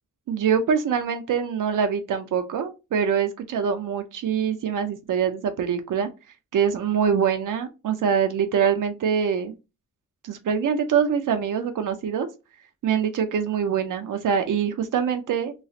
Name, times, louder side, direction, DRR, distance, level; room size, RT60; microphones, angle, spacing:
voice 1, 0.3-6.1 6.5-9.5 10.2-12.3 12.8-15.5, right 7 dB, 80° right, 7 dB, 0.5 m, -24 dB
3.0 x 2.4 x 2.6 m, 0.27 s
wide cardioid pair, 155°, 31 cm